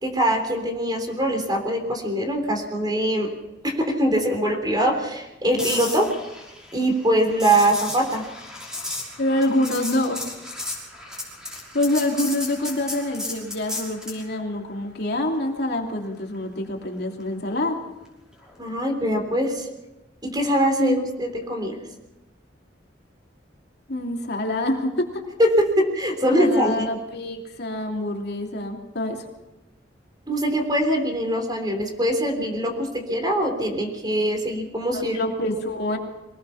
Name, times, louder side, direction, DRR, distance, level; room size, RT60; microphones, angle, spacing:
voice 1, 0.0-3.3 3.6-6.1 6.7-8.2 18.6-19.7 20.2-21.8 25.4-26.9 30.3-35.2, right 1 dB, 25° right, 5 dB, 3.5 m, -23 dB
sound 1, 5.6-14.2 18.4-18.7, left 2 dB, 5° right, 5.6 m, -34 dB
voice 2, 9.2-10.2 11.7-17.8 20.8-21.1 23.9-25.0 26.3-29.2 34.9-36.0, left 1 dB, 60° left, 1 dB, 3.0 m, -26 dB
24.5 x 19.0 x 5.8 m, 0.99 s
head